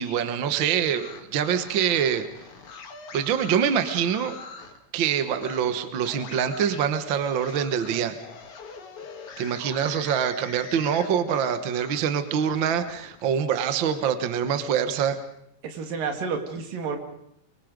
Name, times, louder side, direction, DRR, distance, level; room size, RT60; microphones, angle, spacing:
voice 1, 0.0-2.3 3.1-4.4 4.9-8.2 9.4-15.2, right 8 dB, 55° right, 10 dB, 1.3 m, -25 dB
sound 1, 0.7-4.8 5.3-5.6 6.0-12.1 12.4-14.1, left 5 dB, 60° left, 3.2 m, -43 dB
voice 2, 15.6-17.0, right 5 dB, 80° right, 5 dB, 3.8 m, -30 dB
24.5 x 23.5 x 5.2 m, 0.74 s
omnidirectional pair, 3.9 m